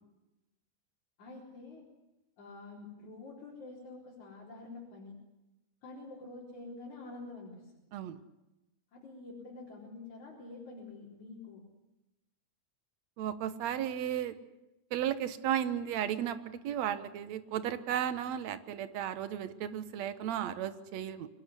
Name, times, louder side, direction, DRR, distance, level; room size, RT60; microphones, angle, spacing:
voice 1, 1.2-1.8 2.4-5.1 5.8-7.7 8.9-11.6, left 3 dB, 65° left, -5 dB, 5.6 m, -47 dB
voice 2, 13.2-14.4 14.9-21.3, right 10 dB, 65° right, 12 dB, 2.3 m, -34 dB
25.0 x 19.0 x 9.8 m, 0.98 s
omnidirectional pair, 3.6 m